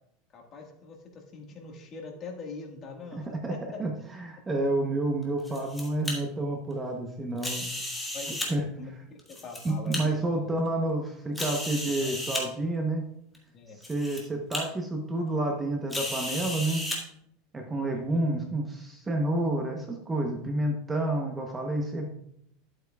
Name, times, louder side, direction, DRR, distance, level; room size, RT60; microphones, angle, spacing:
voice 1, 0.3-3.8 8.1-10.6 11.8-12.1 13.5-13.8 17.9-18.3, left 4 dB, 30° left, 1 dB, 1.6 m, -43 dB
voice 2, 3.1-3.9 4.2-7.6 8.5-8.7 9.6-13.0 13.8-16.8 17.5-22.1, right 2 dB, 15° right, 2 dB, 0.8 m, -29 dB
sound 1, 5.2-6.1 7.4-8.5 9.2-10.0 10.7-10.8 11.4-12.4 13.3-13.4 13.8-14.2 14.5-14.6 15.9-17.0, left 1 dB, 5° left, 1.8 m, -34 dB
11.5 x 8.1 x 2.3 m, 0.72 s
supercardioid pair, 160°, 0 cm